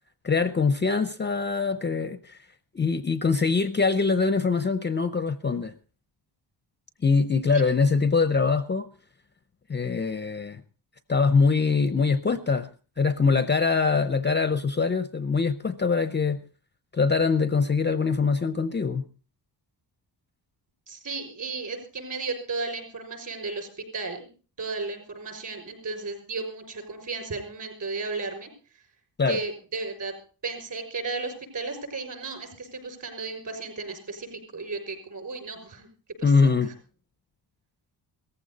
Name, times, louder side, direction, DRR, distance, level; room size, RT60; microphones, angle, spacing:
voice 1, 0.2-2.4 2.7-5.7 7.0-8.9 9.7-10.6 11.1-12.7 13.0-16.4 16.9-19.0 29.2-29.4 36.2-36.7, left 4 dB, 25° left, 0.6 m, -23 dB
voice 2, 20.9-28.8 29.3-30.1 30.4-35.9 36.2-36.7, right 3 dB, 45° right, 6.3 m, -34 dB
17.5 x 15.0 x 4.0 m
wide cardioid pair, 155°, 45 cm